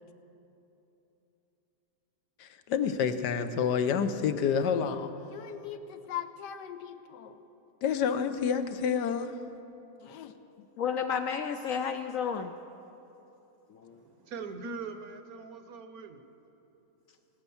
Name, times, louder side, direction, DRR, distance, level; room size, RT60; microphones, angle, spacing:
voice 1, 2.4-7.4 7.8-9.3 10.0-10.3, left 7 dB, 85° left, 9 dB, 1.4 m, -30 dB
voice 2, 10.8-12.5 13.7-14.0, left 7 dB, 70° left, 7 dB, 0.8 m, -32 dB
voice 3, 14.3-16.3, right 4 dB, 65° right, 8 dB, 1.3 m, -41 dB
18.5 x 9.0 x 7.0 m, 3.0 s
omnidirectional pair, 1.8 m